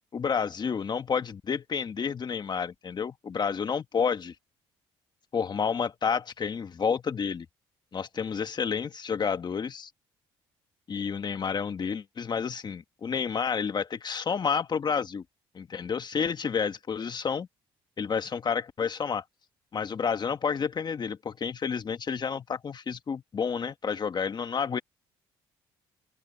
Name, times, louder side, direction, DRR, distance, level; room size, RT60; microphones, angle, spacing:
voice 1, 0.1-4.3 5.3-7.4 7.9-9.9 10.9-15.2 15.5-17.5 18.0-19.2 19.7-24.8, left 6 dB, 40° left, 1.5 m, -30 dB
open air
supercardioid pair, 75°, 11 cm